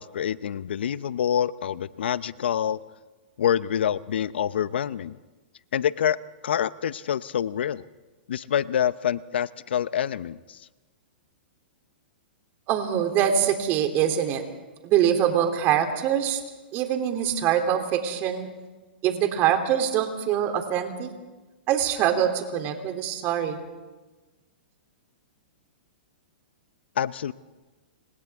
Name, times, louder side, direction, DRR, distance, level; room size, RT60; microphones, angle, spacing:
voice 1, 0.0-2.8 3.4-5.2 5.7-6.2 6.4-7.8 8.3-10.6 27.0-27.3, left 9 dB, 75° left, 18 dB, 0.7 m, -26 dB
voice 2, 12.7-14.4 14.8-16.4 16.7-18.5 19.0-21.1 21.7-23.6, right 9 dB, 35° right, 5 dB, 3.0 m, -24 dB
29.5 x 26.0 x 3.6 m, 1.2 s
hypercardioid pair, 130°, 6 cm